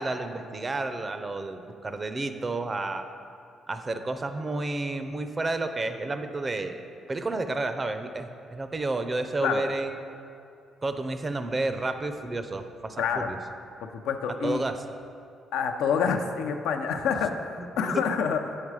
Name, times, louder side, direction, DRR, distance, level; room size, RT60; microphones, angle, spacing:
voice 1, 0.0-3.1 3.7-6.8 7.1-9.9 10.8-13.4 14.4-14.7 17.8-18.0, right 2 dB, 30° right, 8 dB, 0.5 m, -31 dB
voice 2, 13.0-13.3 13.9-14.6 15.5-18.6, left 6 dB, 90° left, 5 dB, 0.5 m, -27 dB
7.4 x 4.9 x 4.7 m, 2.5 s
cardioid pair, 90°, 0 cm